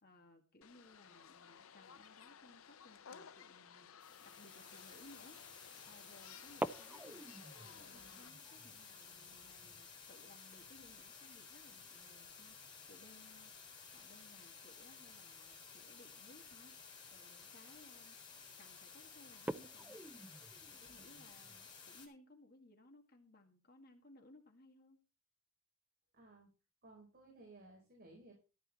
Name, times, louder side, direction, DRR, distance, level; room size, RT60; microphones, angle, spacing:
voice 1, 0.0-5.4 5.9-13.5 13.9-18.2 18.6-20.1 20.7-25.0, left 1 dB, 50° left, 3 dB, 2.1 m, -63 dB
sound 1, 0.6-8.3, left 7 dB, 80° left, 0.7 m, -58 dB
sound 2, 4.0-22.1, left 5 dB, 25° left, 4.1 m, -55 dB
sound 3, 5.0-5.3 6.4-12.9 13.2-13.3 13.6-14.0 15.0-15.2 15.8-15.9 16.4-16.5 16.9-17.2 17.9-18.2 18.6-18.7 19.3-21.6, right 1 dB, 10° right, 0.5 m, -48 dB
voice 2, 26.1-26.5 26.8-28.3, right 2 dB, 50° right, -1 dB, 4.9 m, -58 dB
14.5 x 8.5 x 4.3 m, 0.33 s
head